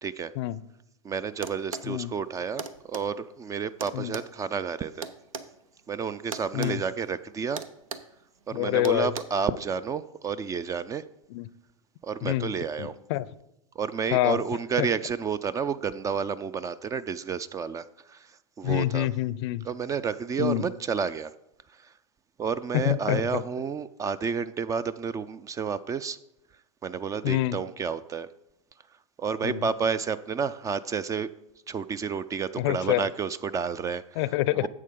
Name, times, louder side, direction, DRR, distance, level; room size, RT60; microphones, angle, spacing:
voice 1, 0.0-0.3 1.0-5.1 5.9-7.6 8.5-11.0 12.0-13.0 13.8-19.1 19.6-21.3 21.7-21.9 22.4-26.2 26.8-28.3 29.2-31.3 31.7-34.2 34.5-34.7, right 6 dB, 20° right, 15 dB, 0.3 m, -30 dB
sound 1, 1.4-1.9 2.6-3.1 3.8-5.5 6.3-6.8 7.0-7.2 7.6-8.1 8.8-9.2, right 5 dB, 85° right, 0.7 m, -37 dB
voice 2, 8.5-9.1 11.3-11.5 12.2-12.5 12.8-13.3 14.1-14.4 18.6-19.7 20.4-20.6 22.7-23.4 27.2-27.6 29.4-29.7 32.6-33.1 34.2-34.7, left 16 dB, 55° left, 18 dB, 0.5 m, -26 dB
11.0 x 7.6 x 3.7 m, 0.86 s
hypercardioid pair, 105°, 17 cm